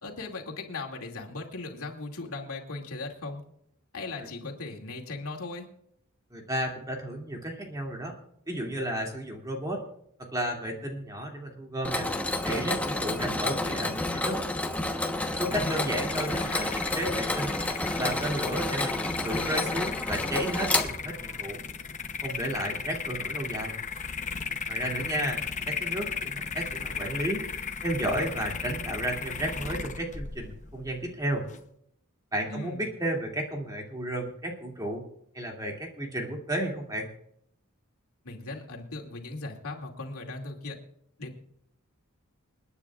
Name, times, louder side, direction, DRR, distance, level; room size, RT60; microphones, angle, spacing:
voice 1, 0.0-3.4 3.9-5.7 15.5-15.9 24.8-25.3 32.5-32.9 38.2-40.8 41.2-41.4, left 3 dB, 80° left, 0 dB, 2.5 m, -38 dB
voice 2, 6.3-8.2 8.5-9.8 10.2-12.1 12.4-14.4 15.2-17.5 18.0-21.6 22.2-23.7 24.7-25.4 25.7-27.4 27.8-31.4 32.3-35.1 35.3-37.1, right 1 dB, 15° right, 0 dB, 2.6 m, -33 dB
Mechanisms, 11.8-21.4, left 2 dB, 5° left, 1.1 m, -30 dB
sound 1, 15.3-31.6, left 5 dB, 35° left, 0.9 m, -36 dB
29.5 x 9.9 x 2.5 m, 0.71 s
head